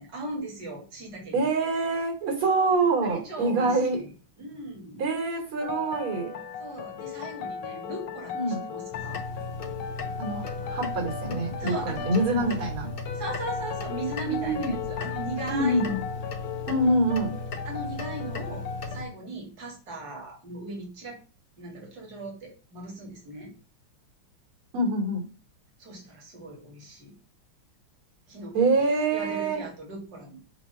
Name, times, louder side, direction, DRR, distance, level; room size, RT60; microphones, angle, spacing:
voice 1, 0.0-1.5 3.0-4.1 4.4-5.0 6.6-9.2 11.6-12.7 13.1-16.0 17.6-21.2 21.6-23.5 25.8-27.1 28.3-30.4, right 2 dB, 50° right, -1 dB, 2.8 m, -39 dB
voice 2, 1.3-4.0 5.0-6.3 8.3-8.6 10.2-12.9 14.3-14.7 15.5-16.0 16.7-17.3 24.7-25.3 28.5-29.6, right 2 dB, 85° right, 0 dB, 4.1 m, -25 dB
sound 1, 5.6-19.0, left 6 dB, 80° left, 1.7 m, -37 dB
sound 2, 8.9-19.1, left 3 dB, 55° left, 0.6 m, -36 dB
7.2 x 3.3 x 5.7 m, 0.35 s
omnidirectional pair, 2.3 m